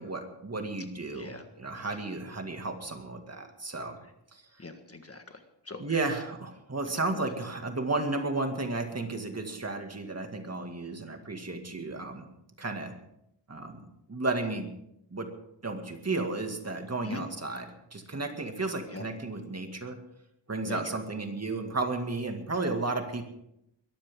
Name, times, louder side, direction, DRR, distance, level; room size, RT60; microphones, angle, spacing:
voice 1, 0.0-4.0 4.3-4.4 5.8-12.3 12.6-12.9 13.5-14.7 15.1-15.3 15.6-20.0 20.5-23.2, right 3 dB, 35° right, 4 dB, 2.2 m, -33 dB
voice 2, 1.1-1.4 4.6-5.8 7.1-7.3 17.0-17.2 18.9-19.1 20.7-20.8, left 3 dB, 35° left, 6 dB, 1.6 m, -41 dB
21.5 x 14.5 x 3.7 m, 0.78 s
wide cardioid pair, 105°, 43 cm